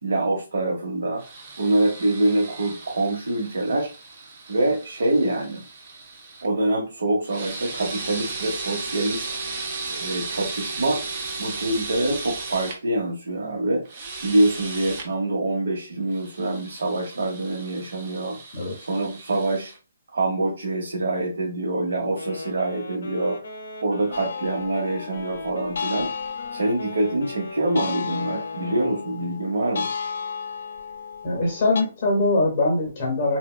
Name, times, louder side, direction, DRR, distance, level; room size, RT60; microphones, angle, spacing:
voice 1, 0.0-1.2 1.6-3.9 4.5-5.6 6.4-9.2 9.9-11.0 11.4-13.8 14.2-18.4 18.8-19.7 20.1-23.4 23.8-26.1 26.5-29.9, right 2 dB, 75° right, -2 dB, 0.9 m, -25 dB
sound 1, 1.2-6.5 7.2-12.8 13.9-15.1 16.1-19.8, right 3 dB, 30° right, 0.5 m, -35 dB
Wind instrument woodwind instrument, 22.1-29.2, left 2 dB, 75° left, 0.7 m, -39 dB
sound 2, 24.1-31.8, left 6 dB, 55° left, 0.3 m, -34 dB
voice 2, 31.2-33.4, left 2 dB, 25° left, -1 dB, 0.7 m, -22 dB
3.3 x 2.2 x 2.3 m, 0.33 s
hypercardioid pair, 180°, 0 cm